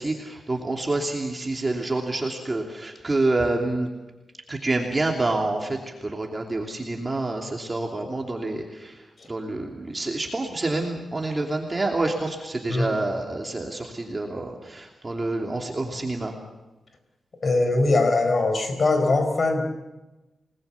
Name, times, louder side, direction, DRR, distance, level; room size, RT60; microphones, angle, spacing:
voice 1, 0.0-3.9 4.5-16.3, right 2 dB, 25° right, 1 dB, 2.9 m, -27 dB
voice 2, 17.4-19.6, left 2 dB, 45° left, 6 dB, 4.8 m, -21 dB
29.5 x 20.0 x 7.1 m, 1.1 s
wide cardioid pair, 125°, 0 cm